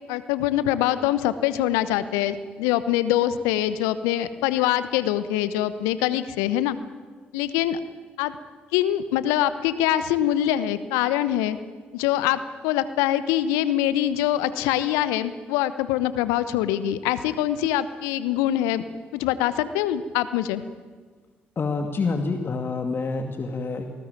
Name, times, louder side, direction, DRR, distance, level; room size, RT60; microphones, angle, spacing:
voice 1, 0.1-6.8 7.3-7.8 8.2-8.3 8.7-11.6 11.9-18.8 19.1-20.6, left 12 dB, 75° left, 14 dB, 1.0 m, -24 dB
voice 2, 21.6-23.9, left 4 dB, 45° left, 5 dB, 2.4 m, -27 dB
27.5 x 19.5 x 9.1 m, 1.5 s
hypercardioid pair, 40°, 5 cm